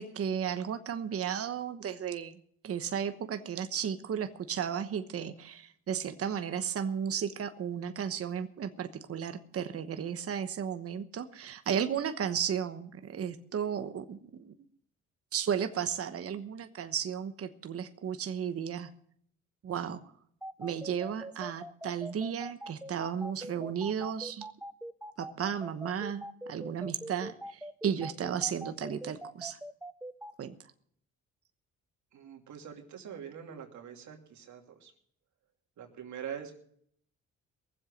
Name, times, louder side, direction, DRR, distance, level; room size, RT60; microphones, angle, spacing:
voice 1, 0.0-14.5 15.3-18.9 19.6-20.0 20.6-24.5 25.2-29.6 30.4-30.6, right 8 dB, 50° right, 9 dB, 1.1 m, -34 dB
sound 1, 20.4-30.3, right 1 dB, 5° right, 0.7 m, -42 dB
voice 2, 32.1-34.9 35.8-36.5, right 8 dB, 70° right, 3 dB, 2.8 m, -44 dB
20.0 x 7.7 x 6.5 m, 0.63 s
cardioid pair, 90°, 30 cm